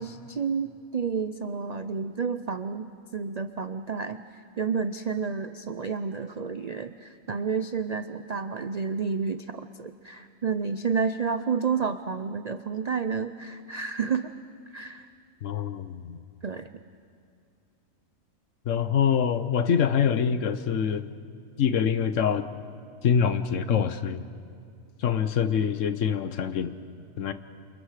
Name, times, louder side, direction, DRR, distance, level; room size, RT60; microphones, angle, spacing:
voice 1, 0.0-4.2 4.6-14.3 14.7-15.1 16.4-16.7, right 5 dB, 55° right, 10 dB, 0.4 m, -30 dB
voice 2, 15.4-16.2 18.7-21.1 21.6-22.4 23.0-24.2 25.0-26.7 27.2-27.3, left 7 dB, 65° left, 12 dB, 1.2 m, -25 dB
28.0 x 28.0 x 4.9 m, 2.4 s
omnidirectional pair, 1.5 m